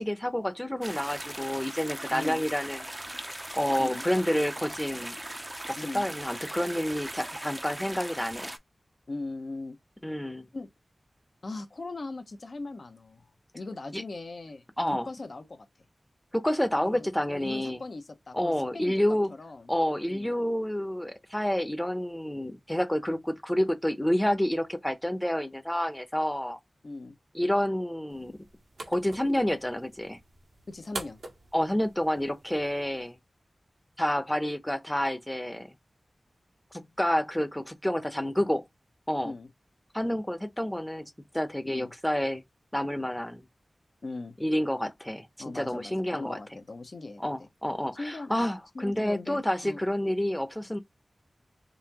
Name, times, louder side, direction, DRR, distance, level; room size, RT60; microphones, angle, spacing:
voice 1, 0.0-2.9 3.5-5.2 5.7-8.5 10.0-10.5 13.9-14.0 14.8-15.1 16.3-17.8 18.3-19.3 19.7-26.6 27.3-28.5 28.9-30.2 31.5-33.2 34.0-35.7 36.7-38.6 39.1-39.3 39.9-42.4 42.7-43.5 44.4-45.3 45.5-46.4 47.2-50.8, left 1 dB, 10° left, 0.8 m, -29 dB
sound 1, 0.8-8.6, right 1 dB, 20° right, 0.6 m, -39 dB
voice 2, 2.1-2.4 3.8-4.1 5.8-6.1 9.1-9.8 10.5-10.7 11.4-13.3 13.5-14.6 14.9-15.7 16.8-19.7 20.1-20.3 26.8-27.1 30.7-31.2 39.2-39.5 41.6-41.9 44.0-44.4 45.4-47.5 48.0-49.8, left 2 dB, 65° left, 0.9 m, -39 dB
sound 2, 28.1-33.1, right 2 dB, 85° right, 1.3 m, -45 dB
4.0 x 2.8 x 2.9 m
wide cardioid pair, 55°, 0 cm